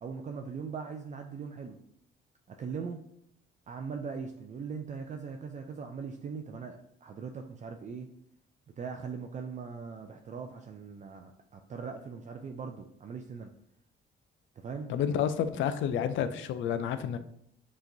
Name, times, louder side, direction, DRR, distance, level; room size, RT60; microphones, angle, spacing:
voice 1, 0.0-1.8 2.5-3.0 3.7-8.1 8.8-13.5 14.6-14.9, right 5 dB, 40° right, 0.4 m, -40 dB
voice 2, 14.9-17.2, left 8 dB, 75° left, 0.4 m, -30 dB
5.7 x 3.1 x 2.7 m
cardioid pair, 90°, 20 cm